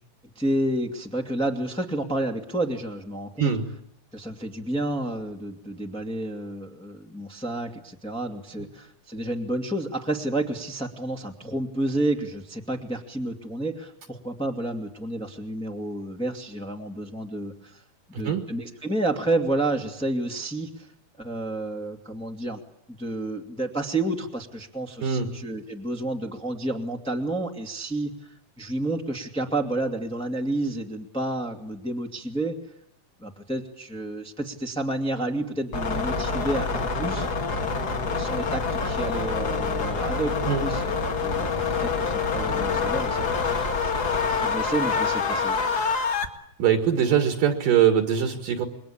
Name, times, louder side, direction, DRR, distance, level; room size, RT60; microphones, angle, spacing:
voice 1, 0.3-3.5 4.1-17.8 18.1-20.9 21.2-22.6 23.0-32.7 33.2-37.3 38.0-44.0 44.3-45.7, right 1 dB, ahead, 2 dB, 1.3 m, -30 dB
sound 1, 35.7-46.3, left 4 dB, 35° left, 1.6 m, -26 dB
voice 2, 46.6-48.7, right 8 dB, 65° right, 6 dB, 3.3 m, -22 dB
28.0 x 22.5 x 8.8 m, 0.72 s
omnidirectional pair, 4.4 m